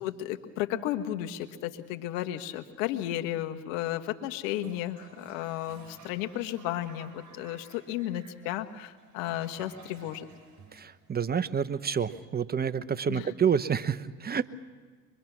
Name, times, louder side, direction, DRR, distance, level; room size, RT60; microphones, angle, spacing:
voice 1, 0.0-10.3 13.1-13.3, left 13 dB, 75° left, 7 dB, 1.5 m, -33 dB
Toilet flush, 4.5-11.4, right 6 dB, 45° right, 7.3 m, -54 dB
voice 2, 10.7-14.5, right 7 dB, 25° right, 12 dB, 0.9 m, -28 dB
24.0 x 23.0 x 6.1 m, 1.5 s
hypercardioid pair, 75°, 40 cm